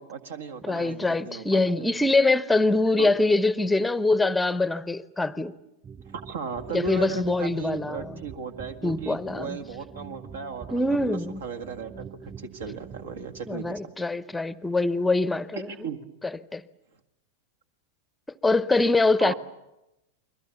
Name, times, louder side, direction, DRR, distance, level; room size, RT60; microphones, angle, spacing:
voice 1, 0.0-1.9 3.0-3.1 6.1-14.0 15.5-16.0 19.2-19.3, right 5 dB, 60° right, 1.8 m, -36 dB
voice 2, 0.6-5.5 6.7-8.2 8.8-9.6 10.7-11.4 13.5-15.7 16.5-16.6 18.4-19.3, left 2 dB, 5° left, 0.8 m, -24 dB
sound 1, 5.8-13.8, right 7 dB, 25° right, 3.1 m, -45 dB
29.5 x 22.5 x 7.0 m
figure-of-eight pair, 90°, 0 cm